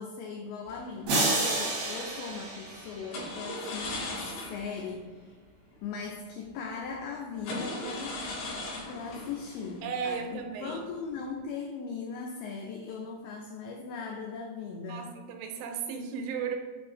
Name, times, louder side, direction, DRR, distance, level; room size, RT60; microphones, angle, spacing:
voice 1, 0.0-5.4 5.8-8.2 8.9-15.1, left 5 dB, 85° left, 1 dB, 2.6 m, -39 dB
sound 1, 0.7-1.4 3.1-4.9 5.2-5.3 5.7-5.9 6.6-6.7 7.4-10.5 10.9-11.3, left 2 dB, 65° left, 3.7 m, -38 dB
sound 2, 1.1-3.4, right 2 dB, 70° right, 1.6 m, -30 dB
voice 2, 9.8-10.8 14.9-16.6, right 6 dB, 90° right, 4 dB, 3.3 m, -35 dB
8.0 x 2.8 x 4.9 m, 1.4 s
omnidirectional pair, 5.7 m